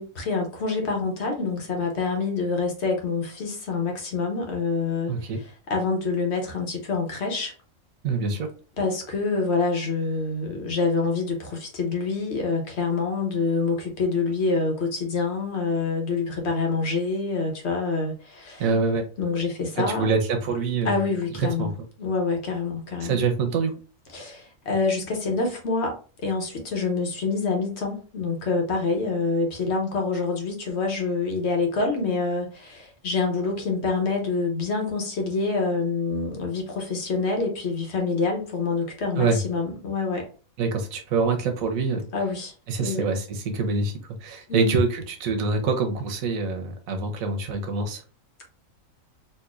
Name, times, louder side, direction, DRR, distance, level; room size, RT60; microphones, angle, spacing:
voice 1, 0.0-5.1 5.7-7.5 8.8-18.6 19.2-20.1 20.8-21.7 22.0-23.2 24.1-26.0 26.2-40.3 42.1-42.5 42.8-43.1 44.5-44.8, left 4 dB, 60° left, 1.1 m, -26 dB
voice 2, 5.1-5.4 8.0-8.5 18.6-19.1 19.8-21.7 23.0-23.7 39.2-39.4 40.6-42.1 42.7-43.9 44.2-48.0, right 4 dB, 90° right, 1.2 m, -25 dB
4.2 x 2.5 x 2.4 m
omnidirectional pair, 1.4 m